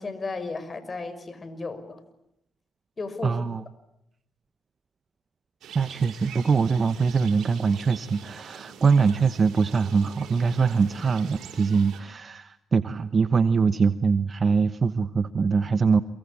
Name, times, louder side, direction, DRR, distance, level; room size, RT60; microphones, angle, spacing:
voice 1, 0.0-2.0 3.0-3.4, left 3 dB, 35° left, 12 dB, 5.7 m, -34 dB
voice 2, 3.2-3.6 5.7-16.0, right 5 dB, 45° right, 12 dB, 1.1 m, -23 dB
sound 1, 5.6-12.0, right 7 dB, 75° right, 6.9 m, -44 dB
27.5 x 24.5 x 8.7 m, 0.81 s
supercardioid pair, 70°, 0 cm